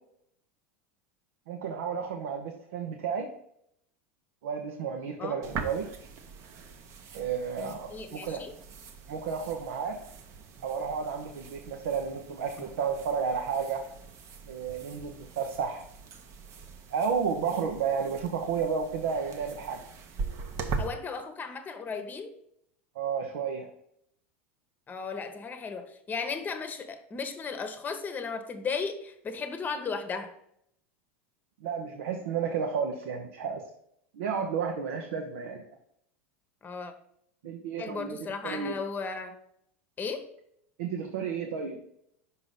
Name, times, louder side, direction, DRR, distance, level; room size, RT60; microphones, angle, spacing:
voice 1, 1.5-3.3 4.4-5.9 7.1-8.4 9.1-10.0 10.6-13.8 14.5-15.8 16.9-19.8 22.9-23.7 31.6-33.6 34.1-35.6 37.4-38.2 38.4-38.8 40.8-41.8, right 6 dB, 75° right, 3 dB, 0.8 m, -32 dB
sound 1, 5.4-20.9, right 4 dB, 50° right, 0.8 m, -42 dB
voice 2, 7.9-8.5 20.8-22.3 24.9-30.3 36.6-36.9 37.8-39.3 40.0-40.3, left 5 dB, 25° left, 8 dB, 0.9 m, -35 dB
5.6 x 4.9 x 4.0 m, 0.72 s
hypercardioid pair, 95°, 7 cm